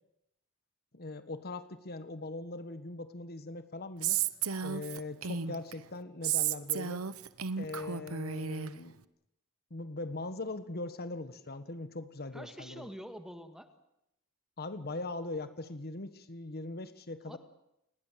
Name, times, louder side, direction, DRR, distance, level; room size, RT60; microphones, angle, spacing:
voice 1, 0.9-4.2 4.6-7.1 7.6-9.0 9.7-12.9 14.6-17.4, left 2 dB, 45° left, 11 dB, 1.4 m, -40 dB
Female speech woman speaking, 4.0-5.7 6.2-8.7, right 8 dB, 80° right, 1.0 m, -33 dB
voice 2, 12.3-13.7 17.3-17.4, equal, 5° right, 7 dB, 1.9 m, -46 dB
29.0 x 20.5 x 7.5 m, 0.84 s
head